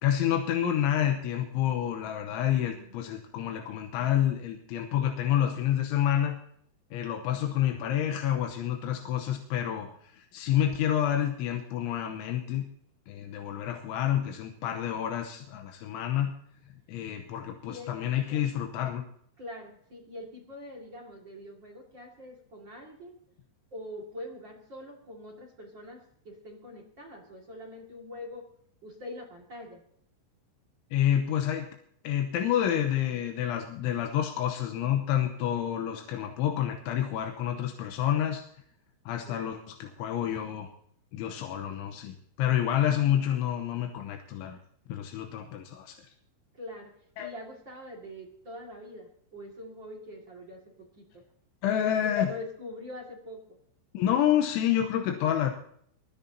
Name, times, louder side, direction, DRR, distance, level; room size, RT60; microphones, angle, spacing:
voice 1, 0.0-6.4 6.9-12.6 13.1-16.3 16.9-19.0 30.9-31.7 32.0-38.4 39.1-40.7 41.1-44.6 44.9-46.0 47.2-47.3 51.6-52.3 53.9-55.5, left 10 dB, 80° left, 4 dB, 3.3 m, -28 dB
voice 2, 2.6-3.0 17.6-18.5 19.4-23.2 23.7-28.5 28.8-29.8 39.2-39.6 46.5-46.9 47.2-51.2 51.7-53.6, left 1 dB, 40° right, 0 dB, 1.7 m, -44 dB
23.0 x 14.0 x 2.8 m, 0.65 s
omnidirectional pair, 5.6 m